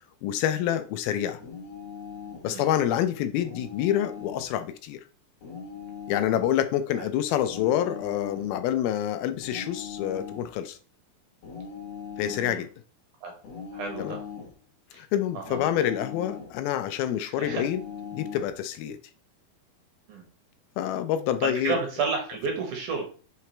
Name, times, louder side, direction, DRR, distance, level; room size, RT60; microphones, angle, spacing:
voice 1, 0.2-1.4 2.4-5.0 6.1-10.8 12.2-12.7 14.0-14.2 14.9-17.8 18.1-19.0 20.8-21.8, left 11 dB, 80° left, 2.4 m, -27 dB
sound 1, 1.4-2.5 3.4-4.5 5.4-6.5 7.4-8.5 9.4-10.6 11.4-12.6 13.4-14.6 15.4-16.6 17.4-18.6, left 6 dB, 55° left, 2.1 m, -40 dB
voice 2, 12.2-12.6 13.2-13.3 13.7-14.2 14.9-15.0 15.3-15.6 17.2-17.6 20.1-20.3 21.4-23.0, right 5 dB, 65° right, 2.6 m, -31 dB
5.8 x 4.6 x 4.2 m
omnidirectional pair, 4.4 m